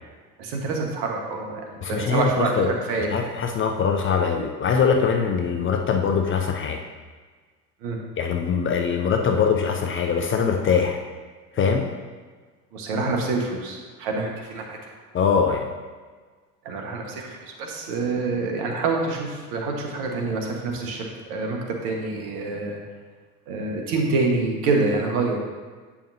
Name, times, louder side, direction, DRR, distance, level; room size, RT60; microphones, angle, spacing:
voice 1, 0.4-3.1 7.8-8.0 12.7-14.8 16.6-22.8 23.5-25.4, right 3 dB, 60° right, 1 dB, 1.6 m, -26 dB
voice 2, 1.8-2.7 3.1-6.8 8.2-11.0 11.5-11.9 15.1-15.7, left 6 dB, 25° left, 4 dB, 0.6 m, -22 dB
8.8 x 5.7 x 2.8 m, 1.4 s
hypercardioid pair, 85°, 48 cm